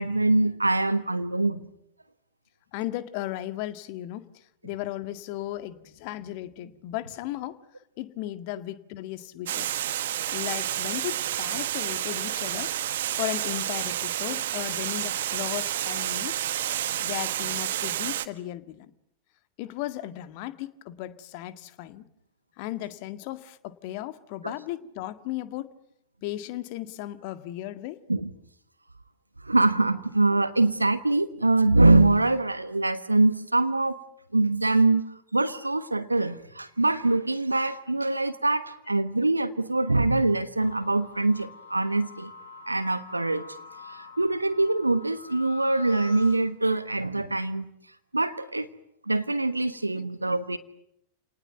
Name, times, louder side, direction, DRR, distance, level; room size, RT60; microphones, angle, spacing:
voice 1, 0.0-1.7 24.4-24.5 28.1-28.3 29.4-34.0 34.3-35.0 35.3-42.3 42.7-43.5 43.9-47.7 48.1-48.7 49.1-50.6, right 2 dB, 85° right, 13 dB, 1.3 m, -24 dB
voice 2, 2.7-7.6 8.0-9.7 10.3-12.8 13.2-16.5 17.0-18.9 19.6-22.1 22.6-25.8 26.2-28.0 49.9-50.1, left 14 dB, 45° left, 11 dB, 1.9 m, -36 dB
Water, 9.5-18.3, right 12 dB, 60° right, 1.5 m, -30 dB
sound 1, 40.6-46.4, left 3 dB, 75° left, 5.5 m, -45 dB
30.0 x 19.5 x 9.3 m, 0.77 s
figure-of-eight pair, 90°, 0 cm